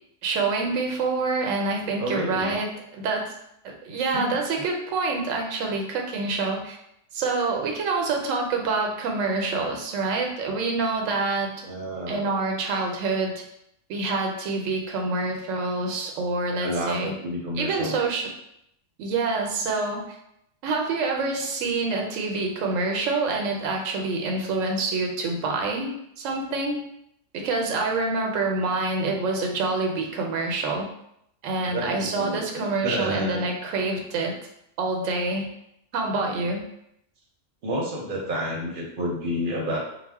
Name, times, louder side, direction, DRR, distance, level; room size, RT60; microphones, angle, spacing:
voice 1, 0.2-2.7 3.0-3.3 3.6-6.8 7.1-11.5 12.1-13.4 13.9-17.1 17.6-18.3 19.0-20.2 20.6-26.8 27.3-30.9 31.4-34.4 34.8-35.5 35.9-36.6, right 3 dB, 90° right, 1 dB, 1.0 m, -26 dB
voice 2, 2.0-2.5 4.1-4.7 11.6-12.3 16.6-18.0 31.7-33.5 37.6-39.8, equal, 55° right, -2 dB, 0.7 m, -30 dB
2.4 x 2.0 x 3.4 m, 0.77 s
omnidirectional pair, 1.3 m